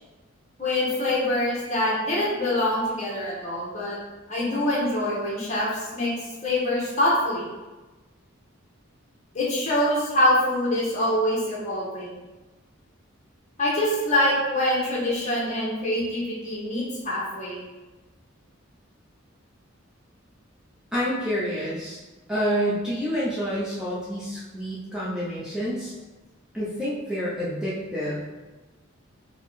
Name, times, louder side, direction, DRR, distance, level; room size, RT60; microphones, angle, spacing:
voice 1, 0.6-4.0 4.3-6.1 6.4-7.4 9.3-12.1 13.6-17.6, left 1 dB, 35° left, -6 dB, 1.4 m, -24 dB
voice 2, 20.9-22.0 22.3-25.9 26.5-28.2, equal, 5° right, -10 dB, 0.8 m, -28 dB
4.1 x 3.1 x 4.1 m, 1.2 s
head